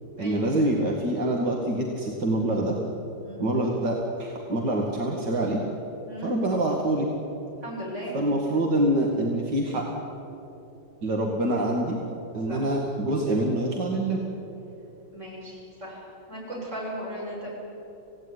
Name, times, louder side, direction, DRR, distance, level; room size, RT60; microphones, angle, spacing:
voice 1, 0.2-2.7 3.4-5.6 6.2-7.1 8.1-9.9 11.0-12.0 12.3-14.2, right 1 dB, 75° right, -1 dB, 2.8 m, -25 dB
voice 2, 7.6-8.1 12.5-12.6 15.1-17.5, equal, 40° right, -4 dB, 8.2 m, -37 dB
27.0 x 17.5 x 9.8 m, 3.0 s
omnidirectional pair, 1.9 m